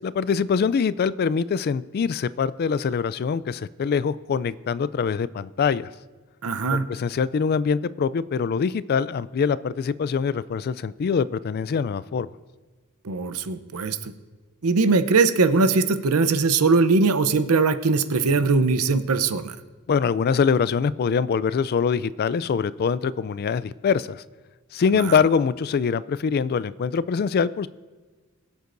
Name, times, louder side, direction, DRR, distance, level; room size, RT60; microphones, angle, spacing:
voice 1, 0.0-5.9 6.7-12.3 19.9-24.2 24.7-27.7, left 6 dB, 45° left, 17 dB, 0.3 m, -24 dB
voice 2, 6.4-6.9 13.0-14.1 14.6-19.6 24.9-25.0, right 4 dB, 85° right, 11 dB, 0.7 m, -21 dB
22.0 x 8.1 x 2.6 m, 1.3 s
head